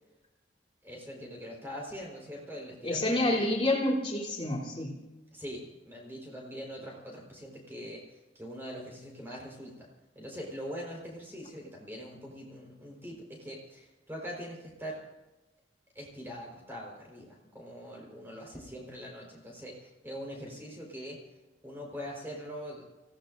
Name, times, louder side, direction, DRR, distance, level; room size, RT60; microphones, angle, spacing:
voice 1, 0.8-3.5 5.3-9.9 10.1-15.0 15.9-21.2 21.6-22.8, equal, 10° right, -2 dB, 4.6 m, -43 dB
voice 2, 2.8-4.9, left 1 dB, 30° left, -4 dB, 3.5 m, -28 dB
28.5 x 17.0 x 2.7 m, 1.1 s
head